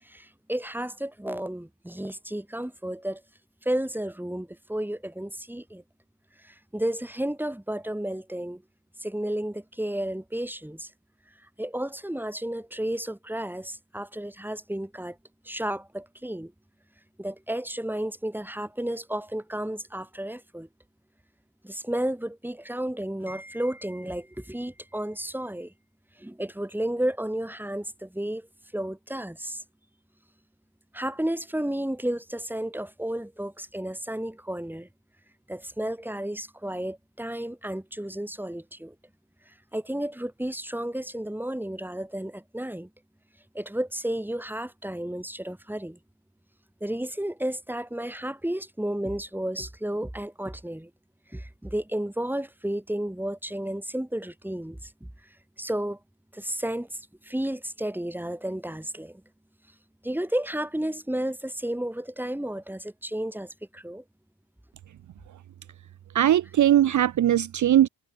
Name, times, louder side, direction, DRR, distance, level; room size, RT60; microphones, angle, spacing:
voice 1, 0.0-3.2 3.6-5.8 6.4-8.6 9.0-10.9 11.6-15.2 15.4-16.5 17.2-20.7 21.6-25.7 26.2-28.5 28.7-29.6 30.9-34.9 35.5-38.9 39.5-42.9 43.5-46.0 46.8-50.9 51.3-55.1 55.6-56.0 56.3-59.2 60.0-64.0, right 1 dB, 5° right, 6.0 m, -32 dB
voice 2, 66.1-67.9, right 11 dB, 50° right, 0.6 m, -20 dB
cardioid pair, 105°, 37 cm